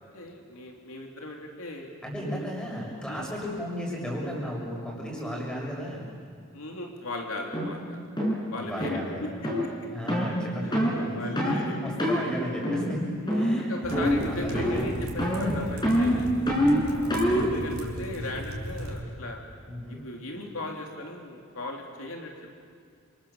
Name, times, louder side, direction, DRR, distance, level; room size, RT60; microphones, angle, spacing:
voice 1, 0.0-1.9 3.1-3.3 6.5-8.0 8.5-9.5 11.1-11.8 13.2-16.4 16.8-19.4 19.9-22.3, left 1 dB, 70° left, 1 dB, 3.1 m, -37 dB
voice 2, 2.0-6.1 8.6-9.4 9.9-13.1 13.3-14.8 17.1-17.4 19.6-20.0, equal, 5° left, -3 dB, 6.6 m, -34 dB
Game Fail Sounds, 7.5-7.7 8.2-8.4 8.8-9.0 9.4-9.6 10.1-10.3 10.7-11.0 11.4-11.6 12.0-12.2 12.6-13.0 13.3-13.6 13.9-14.3 14.5-14.9 15.2-17.5, equal, 20° left, 5.1 m, -25 dB
sound 1, 13.8-19.0, equal, 75° right, 3.9 m, -37 dB
29.0 x 27.0 x 7.3 m, 2.1 s
head